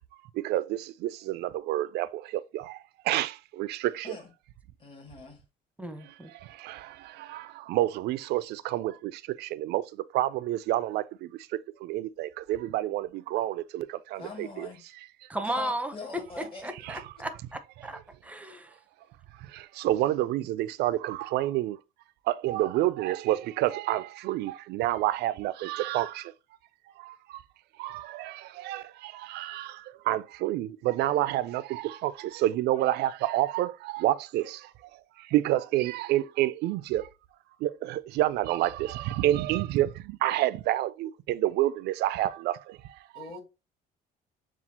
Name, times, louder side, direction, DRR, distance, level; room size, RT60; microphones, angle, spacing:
voice 1, 0.3-2.8 3.0-4.2 6.0-14.7 16.8-17.0 19.4-21.8 22.3-26.3 27.0-27.4 27.8-37.1 37.6-43.2, right 14 dB, 75° right, 0.4 m, -29 dB
voice 2, 4.8-5.4 14.2-14.8 15.4-16.7 43.1-43.4, left 4 dB, 30° left, 1.7 m, -43 dB
voice 3, 5.8-6.3 15.3-18.7, right 1 dB, 10° right, 0.7 m, -35 dB
7.1 x 2.4 x 2.8 m
cardioid pair, 110°, 17 cm